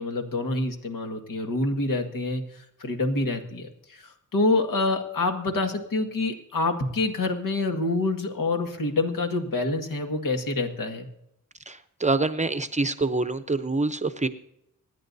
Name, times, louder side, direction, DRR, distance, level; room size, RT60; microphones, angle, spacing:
voice 1, 0.0-11.1, left 2 dB, 70° left, 4 dB, 1.8 m, -27 dB
voice 2, 11.7-14.3, right 3 dB, 20° right, 10 dB, 0.7 m, -26 dB
26.0 x 10.0 x 2.7 m, 0.80 s
wide cardioid pair, 90°, 34 cm